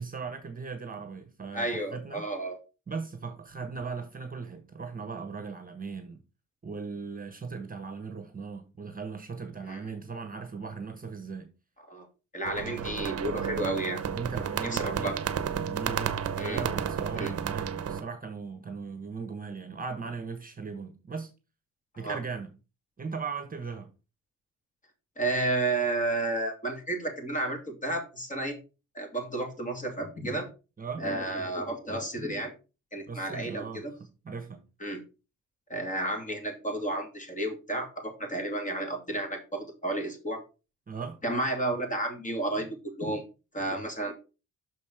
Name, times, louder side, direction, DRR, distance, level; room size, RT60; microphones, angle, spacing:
voice 1, 0.0-2.2 2.9-6.2 6.6-11.5 14.1-15.2 15.6-21.3 22.0-22.5 23.0-23.9 30.8-31.0 33.1-34.6 40.9-41.2, right 5 dB, 25° right, 1.3 m, -38 dB
voice 2, 1.5-2.6 9.7-9.8 11.9-12.1 12.3-14.0 14.6-15.1 16.4-16.6 17.1-17.3 22.0-22.2 25.2-28.6 28.9-30.5 31.0-32.5 32.9-33.9 34.8-35.0 35.7-40.4 41.2-43.2 43.5-44.1, right 2 dB, 25° left, 2.6 m, -32 dB
sound 1, 12.4-18.0, right 8 dB, 50° right, 0.9 m, -32 dB
6.4 x 5.3 x 4.9 m
cardioid pair, 95°, 32 cm